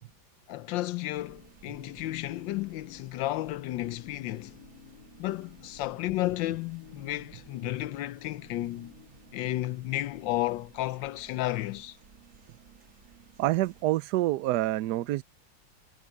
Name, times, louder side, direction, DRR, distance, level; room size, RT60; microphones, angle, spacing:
voice 1, 0.5-4.6 5.2-8.9 9.3-12.0, left 15 dB, 80° left, 1.3 m, -32 dB
sound 1, 1.1-13.8, right 6 dB, 45° right, 2.1 m, -56 dB
sound 2, 1.7-9.9, left 9 dB, 55° left, 3.3 m, -54 dB
voice 2, 13.4-15.2, right 16 dB, 70° right, 1.1 m, -27 dB
omnidirectional pair, 2.1 m